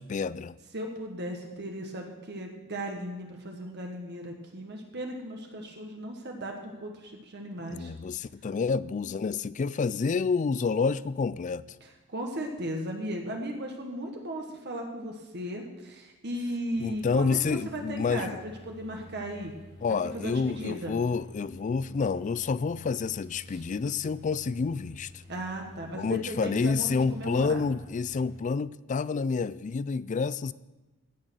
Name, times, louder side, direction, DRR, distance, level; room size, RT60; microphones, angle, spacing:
voice 1, 0.0-0.6 7.7-11.7 16.8-18.4 19.8-25.2 25.9-30.5, left 5 dB, 35° left, 0.3 m, -29 dB
voice 2, 0.7-7.9 11.8-19.5 19.9-21.0 23.5-23.6 25.3-27.6, right 1 dB, 50° right, 1.4 m, -36 dB
sound 1, 16.7-28.4, left 2 dB, 90° left, 4.7 m, -50 dB
16.0 x 6.6 x 6.3 m
head